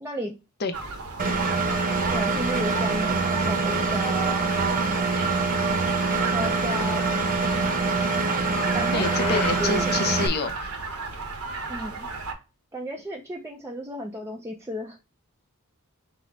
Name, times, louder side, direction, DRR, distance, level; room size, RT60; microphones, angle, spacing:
voice 1, 0.0-0.3 2.1-4.5 6.3-7.2 8.7-9.9 11.7-12.1 12.7-15.0, equal, 15° right, 0 dB, 0.4 m, -33 dB
sound 1, 0.7-12.3, right 4 dB, 75° right, 1.0 m, -34 dB
Engine, 1.2-10.3, right 4 dB, 40° right, 0.8 m, -25 dB
sound 2, 7.6-9.7, left 3 dB, 70° left, 1.3 m, -35 dB
voice 2, 8.9-11.0, left 4 dB, 45° left, 9 dB, 0.6 m, -28 dB
5.6 x 2.0 x 3.9 m, 0.28 s
head